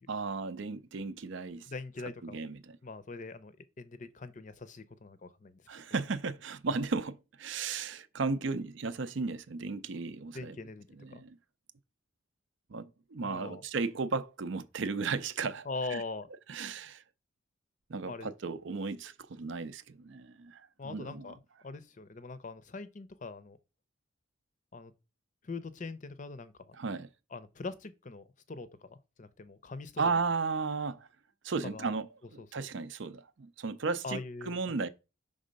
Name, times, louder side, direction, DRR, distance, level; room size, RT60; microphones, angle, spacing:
voice 1, 0.1-1.7 2.0-2.8 5.7-10.6 11.0-11.4 12.7-16.0 16.5-17.0 17.9-21.4 26.7-27.1 30.0-31.1 31.4-34.2 34.4-34.9, right 4 dB, 65° right, 0.5 m, -35 dB
voice 2, 1.7-2.5 2.8-5.6 10.3-10.9 11.1-11.2 13.2-13.6 15.6-16.3 18.1-18.3 20.8-21.3 21.6-23.6 24.7-24.9 25.4-26.7 27.3-30.1 31.6-31.9 32.4-32.7 34.0-34.8, left 3 dB, 40° left, 0.5 m, -42 dB
5.5 x 3.7 x 5.1 m
head